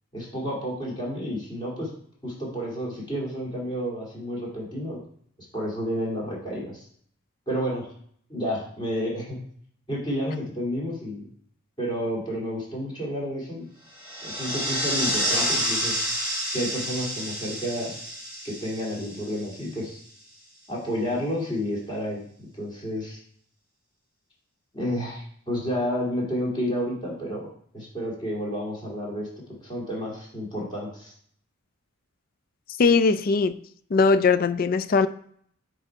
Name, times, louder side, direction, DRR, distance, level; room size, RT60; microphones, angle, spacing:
voice 1, 0.1-1.9 2.2-5.0 5.5-6.9 7.5-7.9 8.3-9.4 9.9-11.3 11.8-13.7 14.2-15.9 16.5-18.0 18.4-20.0 20.7-23.2 24.7-27.5 27.7-29.3 29.6-31.1, equal, 20° left, -4 dB, 2.3 m, -30 dB
sound 1, 13.9-19.8, equal, 5° right, 2.4 m, -29 dB
voice 2, 32.8-33.6 33.9-35.1, left 4 dB, 40° left, 13 dB, 0.3 m, -20 dB
9.5 x 3.5 x 4.4 m, 0.62 s
head